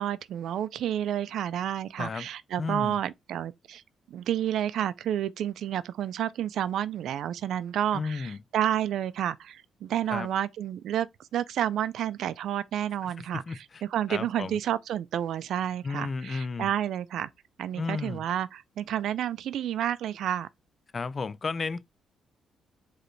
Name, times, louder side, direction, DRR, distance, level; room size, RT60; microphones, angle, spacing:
voice 1, 0.0-3.8 4.1-11.1 11.3-17.3 17.6-20.5, right 10 dB, 75° right, 0.4 m, -30 dB
voice 2, 2.0-2.3 2.6-3.0 7.9-8.4 10.1-10.3 13.2-13.8 14.1-14.6 15.8-16.7 17.8-18.3 20.9-21.9, left 4 dB, 40° left, 0.4 m, -33 dB
4.9 x 3.2 x 3.1 m
cardioid pair, 90°, 0 cm